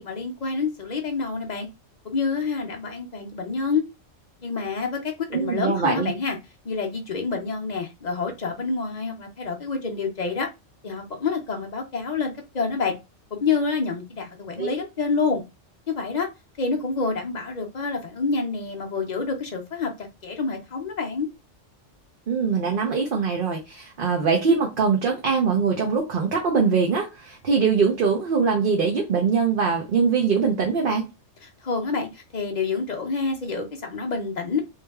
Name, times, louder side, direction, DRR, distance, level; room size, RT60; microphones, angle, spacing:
voice 1, 0.0-1.7 2.0-3.8 4.4-6.4 6.6-10.5 10.8-12.9 13.4-15.4 15.9-16.3 16.6-21.3 31.4-34.6, left 4 dB, 45° left, 0.6 m, -27 dB
voice 2, 5.3-6.1 14.6-14.8 22.3-31.0, right 5 dB, 50° right, 0.8 m, -22 dB
3.1 x 2.7 x 3.5 m
omnidirectional pair, 1.3 m